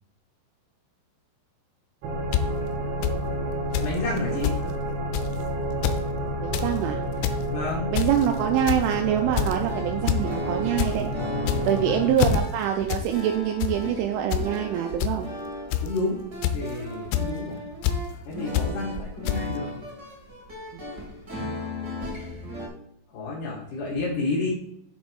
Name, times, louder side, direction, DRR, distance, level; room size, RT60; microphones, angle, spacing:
sound 1, 2.0-12.1, right 1 dB, 70° right, 3.0 m, -30 dB
sound 2, 2.3-2.4 3.0-3.1 3.7-4.2 4.4-4.6 5.1-5.4 5.7-6.0 6.4-6.7 7.1-7.4 8.0-8.3 8.7-8.9 9.4-9.6 10.1-10.2 10.5-10.9 11.4-11.8 12.2-12.4 12.9-13.1 13.4-13.7 14.3-14.5 15.0-15.1 15.7-16.0 16.4-16.7 17.1-17.3 17.8-18.0 18.6-18.7 19.3-19.4, left 10 dB, 85° left, 3.1 m, -25 dB
voice 1, 3.8-4.6 7.5-7.9 11.2-11.8 15.8-16.2 16.5-17.6 18.2-19.7 23.1-24.5, left 3 dB, 55° left, -8 dB, 2.8 m, -30 dB
voice 2, 6.4-7.0 7.9-11.1 11.6-15.3 18.6-18.8 20.7-20.8, right 10 dB, 85° right, 4 dB, 3.1 m, -25 dB
sound 3, 9.2-22.7, left 1 dB, 30° right, 2.2 m, -37 dB
7.3 x 6.2 x 4.7 m, 0.73 s
omnidirectional pair, 5.6 m